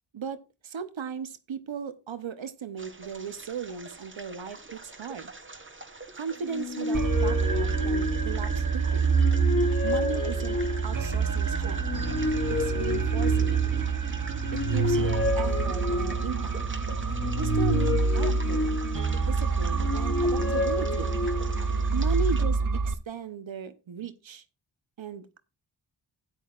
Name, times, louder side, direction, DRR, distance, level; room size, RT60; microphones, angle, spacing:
voice 1, 0.1-5.3 6.1-9.1 9.8-11.9 12.5-13.6 14.5-16.5 17.4-18.7 19.2-21.2 21.9-22.6 22.9-24.4 25.0-25.4, right 6 dB, 75° right, 11 dB, 0.9 m, -36 dB
sound 1, 2.8-22.4, right 3 dB, 25° right, 1.2 m, -45 dB
sound 2, 6.4-8.6 9.0-11.1 11.8-13.9 14.4-16.4 17.1-19.2 19.7-21.7, left 2 dB, 30° left, 1.1 m, -30 dB
sound 3, 6.9-22.9, right 5 dB, 45° right, 0.9 m, -27 dB
13.0 x 9.1 x 2.4 m, 0.29 s
cardioid pair, 45°, 47 cm